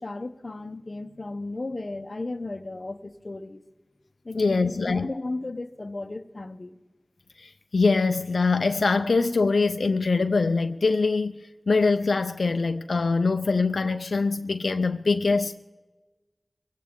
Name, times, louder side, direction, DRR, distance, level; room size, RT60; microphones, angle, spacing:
voice 1, 0.0-3.6 4.2-6.8, left 2 dB, 50° left, 0.8 m, -35 dB
voice 2, 4.4-5.1 7.4-11.3 11.7-15.6, left 4 dB, 80° left, 0.4 m, -23 dB
22.5 x 16.5 x 3.7 m
wide cardioid pair, 60°, 0 cm